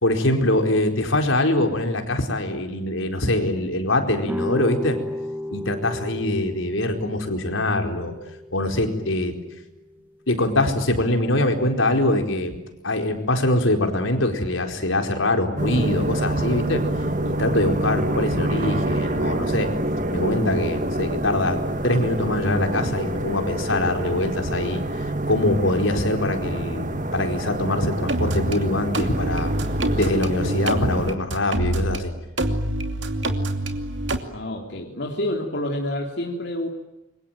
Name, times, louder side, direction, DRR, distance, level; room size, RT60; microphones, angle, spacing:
voice 1, 0.0-5.0 5.5-8.2 8.5-9.3 10.3-12.6 12.8-16.8 17.2-19.7 20.1-24.8 25.3-29.5 29.9-32.1, left 1 dB, 75° left, 5 dB, 4.5 m, -23 dB
sound 1, 4.3-10.0, left 1 dB, 10° right, 1.5 m, -34 dB
sound 2, 15.6-31.2, right 1 dB, 40° right, 1.6 m, -27 dB
sound 3, 28.1-28.6 28.9-32.0 32.4-34.2, right 1 dB, 60° right, 2.7 m, -26 dB
voice 2, 34.3-36.7, left 1 dB, 55° left, 0 dB, 3.4 m, -28 dB
27.5 x 24.0 x 9.1 m, 0.95 s
head